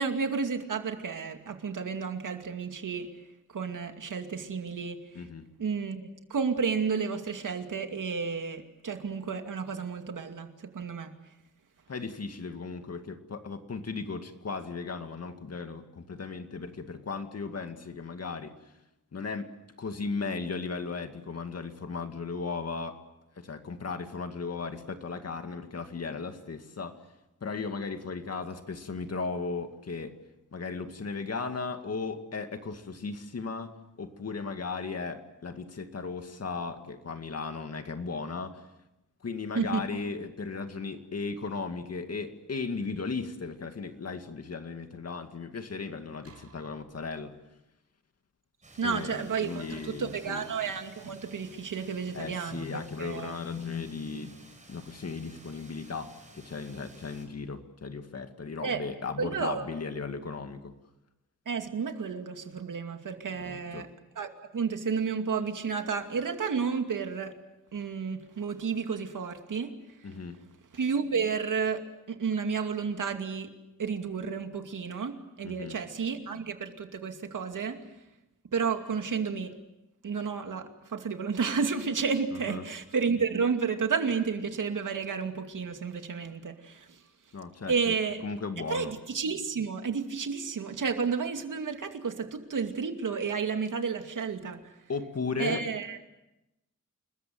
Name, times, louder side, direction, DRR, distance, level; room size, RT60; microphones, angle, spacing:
voice 1, 0.0-3.1 3.5-5.0 5.6-10.5 10.7-11.1 39.5-39.8 48.8-53.4 58.6-58.8 59.2-59.7 61.5-63.9 64.2-67.3 67.7-69.7 70.7-73.5 73.8-77.8 78.5-79.5 80.0-87.0 87.7-88.2 88.7-94.7 95.4-96.0, right 5 dB, 75° right, 5 dB, 2.5 m, -31 dB
voice 2, 5.2-5.5 11.9-18.5 19.1-19.5 19.8-23.0 23.4-27.0 27.4-30.2 30.5-33.7 34.0-38.6 39.2-47.4 48.8-50.4 52.1-54.4 54.7-60.7 63.4-63.9 70.0-70.4 75.4-75.8 82.5-82.6 87.3-87.9 88.2-88.9 94.9-95.6, left 4 dB, 50° left, 7 dB, 2.2 m, -36 dB
sound 1, 46.2-47.4 49.7-50.5, right 3 dB, 50° right, 6.0 m, -56 dB
sound 2, 48.6-57.3, right 2 dB, 25° right, 6.0 m, -54 dB
29.0 x 21.0 x 7.8 m, 0.94 s
wide cardioid pair, 140°, 32 cm